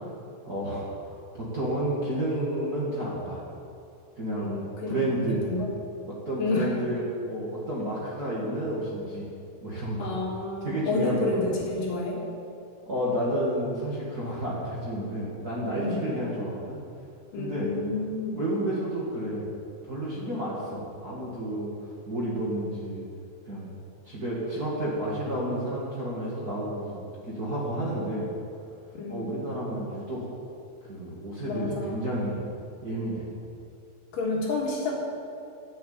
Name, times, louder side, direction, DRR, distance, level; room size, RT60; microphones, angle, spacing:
voice 1, 0.4-0.9 1.3-3.4 4.2-4.5 4.9-5.4 6.1-9.3 9.6-10.1 10.6-11.3 12.8-16.8 17.4-17.7 18.3-19.5 19.8-21.7 22.1-23.0 23.4-23.7 24.0-27.0 27.2-28.3 29.1-30.3 30.8-32.4 32.8-33.3, right 1 dB, 60° right, -7 dB, 0.9 m, -30 dB
voice 2, 4.4-5.7 6.4-6.8 10.0-12.2 15.6-16.1 17.3-18.4 28.9-29.3 31.5-32.0 34.1-35.0, left 2 dB, 60° left, -2 dB, 2.8 m, -30 dB
11.0 x 8.5 x 8.5 m, 2.6 s
omnidirectional pair, 5.5 m